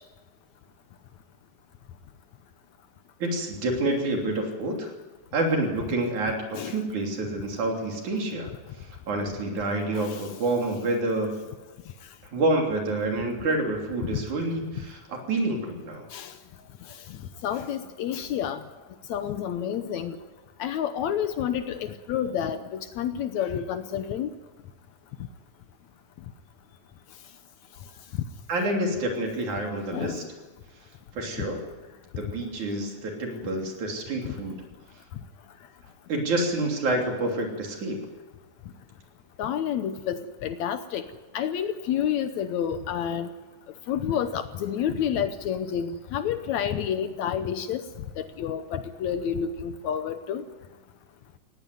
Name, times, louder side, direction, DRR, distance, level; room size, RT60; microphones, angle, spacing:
voice 1, 3.2-4.9 5.3-8.5 9.1-11.3 12.3-16.1 28.5-30.2 31.2-31.7 32.2-34.6 36.1-38.0, right 2 dB, 65° right, 2 dB, 4.5 m, -28 dB
voice 2, 17.4-18.6 19.1-20.2 20.6-24.3 29.9-30.2 39.4-41.1 41.3-43.3 43.9-47.8 48.2-50.4, left 9 dB, 70° left, 10 dB, 2.0 m, -29 dB
18.5 x 17.0 x 9.6 m, 1.3 s
omnidirectional pair, 3.7 m